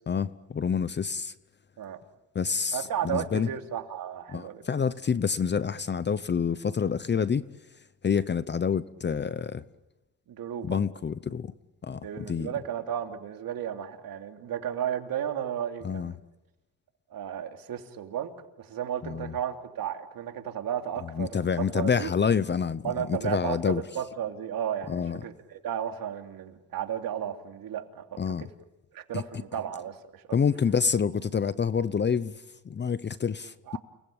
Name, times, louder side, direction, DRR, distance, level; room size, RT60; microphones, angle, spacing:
voice 1, 0.1-1.3 2.3-3.5 4.3-7.4 8.0-9.6 10.6-11.5 11.8-12.5 15.8-16.1 19.0-19.3 21.0-23.8 24.9-25.2 28.2-28.4 29.1-29.2 30.3-32.3 32.6-33.8, left 6 dB, 25° left, 0.9 m, -27 dB
voice 2, 2.7-4.6 10.3-10.8 12.0-16.2 17.1-18.3 18.6-21.3 21.6-22.1 22.8-28.5 28.9-30.2 33.7-33.8, right 9 dB, 55° right, 3.1 m, -34 dB
29.5 x 20.0 x 8.7 m
cardioid pair, 100°, 41 cm